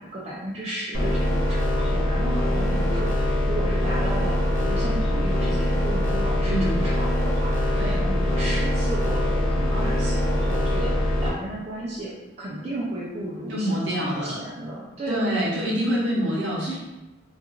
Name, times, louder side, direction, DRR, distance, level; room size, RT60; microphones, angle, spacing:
voice 1, 0.0-12.1 12.4-15.6, right 1 dB, 30° right, -7 dB, 0.4 m, -34 dB
sound 1, 0.9-11.3, left 1 dB, 85° left, 0.7 m, -23 dB
voice 2, 6.4-6.8 7.7-8.0 13.5-14.4 15.1-16.8, equal, 60° right, -5 dB, 0.7 m, -26 dB
2.4 x 2.3 x 2.9 m, 1.0 s
head